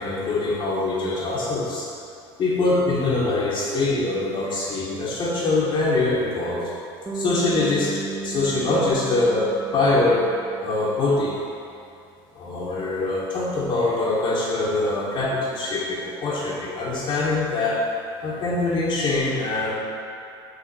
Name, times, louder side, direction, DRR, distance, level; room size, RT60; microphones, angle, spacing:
voice 1, 0.0-1.9 2.4-6.7 7.1-7.9 8.2-10.3 10.6-11.4 12.3-17.8 18.2-19.7, left 2 dB, 40° left, -9 dB, 2.0 m, -23 dB
Bass guitar, 7.1-11.3, right 3 dB, 10° right, 0.8 m, -35 dB
7.3 x 4.3 x 6.3 m, 2.6 s
supercardioid pair, 115°, 13 cm